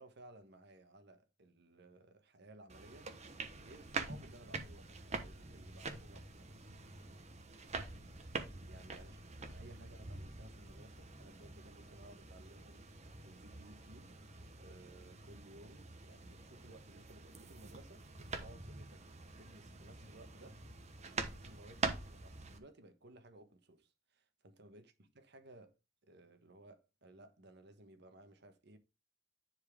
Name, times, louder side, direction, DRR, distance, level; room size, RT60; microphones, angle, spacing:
voice 1, 0.0-6.7 8.6-9.2 9.5-19.0 19.4-20.6 21.1-25.8 26.0-28.8, right 1 dB, 60° right, 1.4 m, -59 dB
sound 1, 2.7-22.6, right 3 dB, 35° right, 1.1 m, -46 dB
10.0 x 4.5 x 3.5 m
head